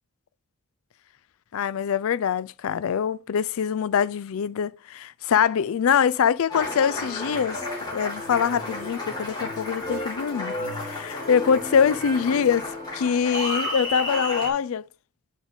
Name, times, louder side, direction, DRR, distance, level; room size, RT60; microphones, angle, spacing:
voice 1, 1.5-7.6 7.9-12.7 12.9-14.8, left 7 dB, 70° left, 0.4 m, -24 dB
Applause, 6.5-14.5, left 1 dB, 20° left, 2.0 m, -32 dB
9.3 x 3.9 x 3.6 m
head